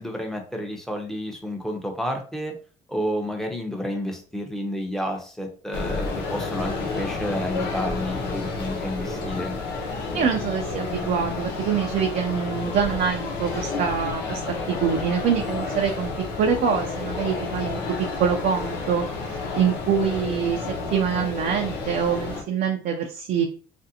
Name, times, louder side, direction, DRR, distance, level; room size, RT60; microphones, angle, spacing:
voice 1, 0.0-2.5 2.9-9.6, equal, 5° left, 2 dB, 0.7 m, -30 dB
sound 1, 5.7-22.4, left 3 dB, 80° left, 0.9 m, -30 dB
voice 2, 10.1-14.4 14.7-16.1 16.4-20.6 20.9-23.5, right 7 dB, 60° right, 3 dB, 0.5 m, -25 dB
3.2 x 2.5 x 2.7 m, 0.40 s
cardioid pair, 110°, 17 cm